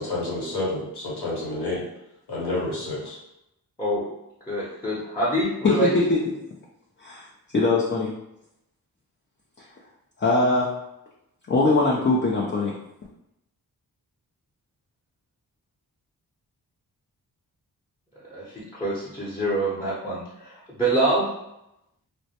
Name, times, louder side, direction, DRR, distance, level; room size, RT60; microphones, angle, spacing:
voice 1, 0.0-1.8 2.3-3.2, left 2 dB, 85° left, -7 dB, 1.0 m, -29 dB
voice 2, 4.5-5.9 18.3-21.3, right 1 dB, 15° left, -8 dB, 0.8 m, -26 dB
voice 3, 5.6-6.2 7.0-7.3 7.5-8.1 10.2-10.8 11.5-12.8, left 3 dB, 30° left, -3 dB, 0.4 m, -21 dB
2.1 x 2.1 x 2.8 m, 0.85 s
cardioid pair, 55°, 39 cm